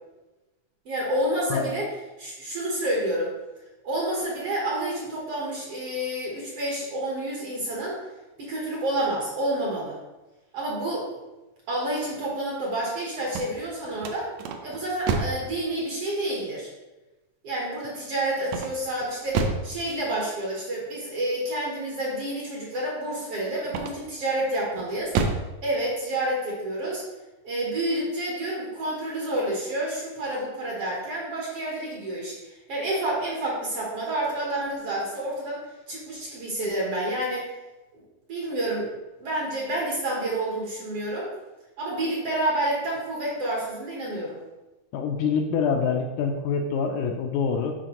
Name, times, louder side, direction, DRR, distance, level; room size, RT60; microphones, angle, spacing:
voice 1, 0.9-1.9 2.2-3.3 3.8-8.0 8.4-10.0 10.5-11.1 11.7-14.3 14.6-16.7 17.4-25.2 25.6-27.0 27.4-37.5 37.9-38.0 38.3-38.9 39.2-41.3 41.8-44.4, right 1 dB, 60° right, -3 dB, 1.8 m, -29 dB
sound 1, 13.2-15.5 18.4-19.7 23.6-24.2 24.7-25.5, right 4 dB, 80° right, 1.6 m, -29 dB
voice 2, 44.9-47.7, left 6 dB, 80° left, 3 dB, 1.9 m, -25 dB
10.0 x 4.2 x 3.0 m, 1.1 s
omnidirectional pair, 3.8 m